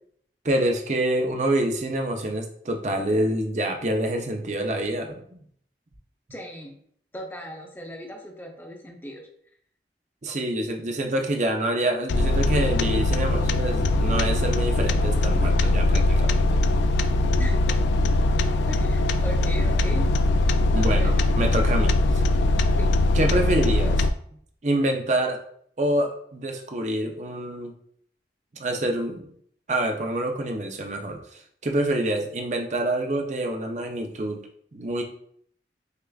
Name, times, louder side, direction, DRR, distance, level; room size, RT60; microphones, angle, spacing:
voice 1, 0.4-5.4 10.2-16.4 20.7-22.2 23.1-24.1 24.6-25.4 25.8-27.7 28.6-29.3 29.7-31.2 31.6-34.4 34.7-35.0, right 1 dB, 40° right, 3 dB, 0.5 m, -26 dB
voice 2, 6.3-6.8 7.1-9.2 17.4-17.9 18.7-20.1 20.8-21.1 22.8-23.0, equal, 10° left, 1 dB, 0.5 m, -38 dB
sound 1, 12.1-24.1, left 2 dB, 85° left, 0.3 m, -21 dB
6.4 x 2.4 x 2.3 m, 0.64 s
head